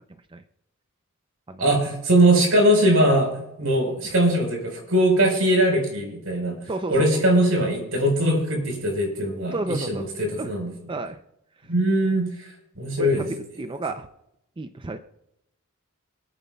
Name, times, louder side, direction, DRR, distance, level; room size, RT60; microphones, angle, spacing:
voice 1, 1.6-6.6 6.9-10.7 11.7-12.3 12.8-13.3, right 1 dB, 80° right, 2 dB, 4.4 m, -21 dB
voice 2, 6.7-7.2 9.5-10.0 10.4-10.5 10.9-11.2 13.0-14.1 14.6-15.0, right 2 dB, 25° right, 8 dB, 0.5 m, -31 dB
27.0 x 9.0 x 2.3 m, 0.84 s
head